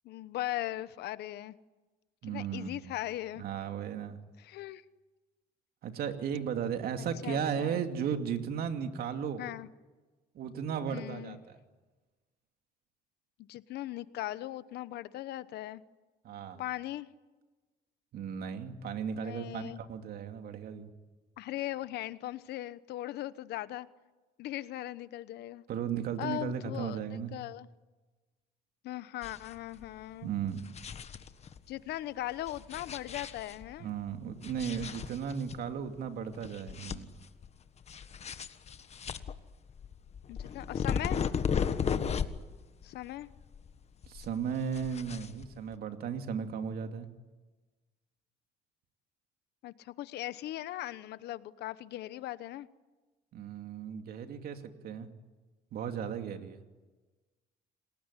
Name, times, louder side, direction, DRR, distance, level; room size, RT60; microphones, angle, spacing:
voice 1, 0.0-1.5 2.3-3.4 4.4-4.8 7.2-7.8 9.4-9.7 10.9-11.4 13.5-15.8 16.6-17.1 19.1-19.8 21.4-23.9 24.4-25.6 26.2-27.7 28.8-30.3 31.7-33.9 40.3-41.2 42.8-43.3 49.6-52.7, left 14 dB, 75° left, 15 dB, 1.1 m, -39 dB
voice 2, 2.2-2.9 3.4-4.2 5.8-9.4 10.3-11.6 16.2-16.6 18.1-20.9 25.7-27.3 30.2-30.6 33.8-37.1 44.1-47.1 53.3-55.1 55.7-56.6, right 7 dB, 65° right, 6 dB, 2.6 m, -35 dB
sound 1, 29.2-29.6 29.8-29.9 30.4-31.6 32.4-33.7 34.4-35.6 36.0-36.1 36.4-37.5 37.8-42.6 42.8-43.8 44.0-45.7, left 7 dB, 40° left, 1.5 m, -35 dB
28.0 x 19.0 x 10.0 m, 1.2 s
cardioid pair, 110°, 17 cm